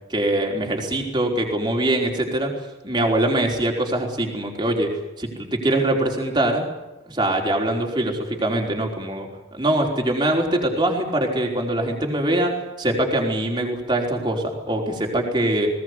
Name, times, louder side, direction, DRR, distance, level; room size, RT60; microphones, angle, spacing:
voice 1, 0.1-2.5 2.8-4.9 5.2-6.7 7.1-12.5 12.8-15.7, right 1 dB, 25° right, 1 dB, 4.7 m, -23 dB
20.5 x 19.0 x 9.9 m, 1.0 s
head